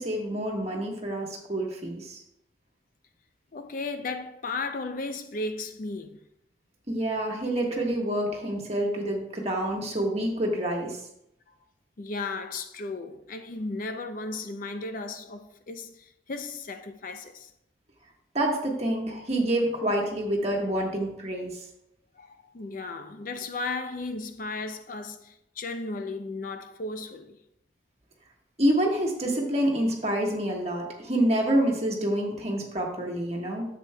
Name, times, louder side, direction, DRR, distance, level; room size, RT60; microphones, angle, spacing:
voice 1, 0.0-2.2 6.9-11.0 18.3-21.6 28.6-33.7, right 1 dB, 35° right, 1.4 m, -27 dB
voice 2, 3.5-6.2 7.3-7.4 12.0-17.5 19.1-19.3 22.2-27.4, left 3 dB, 45° left, 0.5 m, -35 dB
10.0 x 7.7 x 2.2 m
head